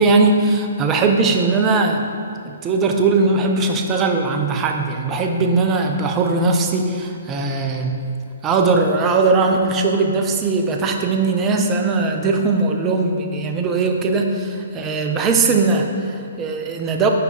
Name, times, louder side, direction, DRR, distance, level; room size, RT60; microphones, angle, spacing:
voice 1, 0.0-2.1 2.5-8.0 8.4-17.1, right 3 dB, 20° right, 3 dB, 0.5 m, -19 dB
5.4 x 4.6 x 4.0 m, 2.4 s
figure-of-eight pair, 125°, 0 cm